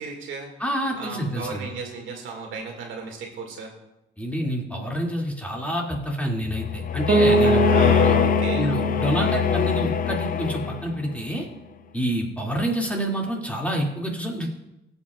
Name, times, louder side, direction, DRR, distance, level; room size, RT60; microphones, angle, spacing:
voice 1, 0.0-0.5 1.0-3.7 7.3-8.7, right 4 dB, 75° right, 0 dB, 2.1 m, -34 dB
voice 2, 0.6-1.6 4.2-7.6 8.0-8.1 8.5-11.5 11.9-14.5, right 1 dB, 5° left, -1 dB, 2.3 m, -27 dB
sound 1, 6.4-11.1, left 8 dB, 45° left, 0.5 m, -23 dB
Bass guitar, 7.1-10.9, right 2 dB, 45° right, 1.3 m, -24 dB
17.0 x 8.1 x 2.4 m, 0.90 s
cardioid pair, 90°, 20 cm